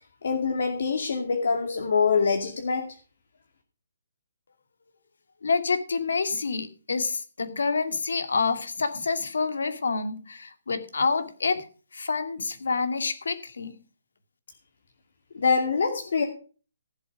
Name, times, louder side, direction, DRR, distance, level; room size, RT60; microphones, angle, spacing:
voice 1, 0.2-2.9 15.3-16.2, left 5 dB, 55° left, 3 dB, 2.4 m, -24 dB
voice 2, 5.4-11.6 11.9-13.8, left 4 dB, 75° left, 9 dB, 2.5 m, -27 dB
15.0 x 7.9 x 5.0 m, 0.37 s
hypercardioid pair, 175°, 0 cm